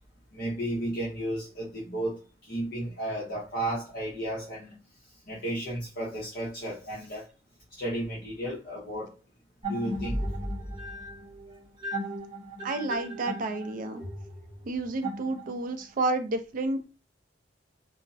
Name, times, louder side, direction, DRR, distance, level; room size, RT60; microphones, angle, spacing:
voice 1, 0.3-4.8 5.3-7.3 7.7-9.2 9.7-10.2 11.5-11.6, right 1 dB, 50° left, 0.8 m, -33 dB
sound 1, 9.6-15.8, equal, 25° right, 0.8 m, -36 dB
voice 2, 12.6-14.0 14.7-16.9, right 2 dB, 45° right, 0.4 m, -30 dB
2.4 x 2.0 x 2.5 m
head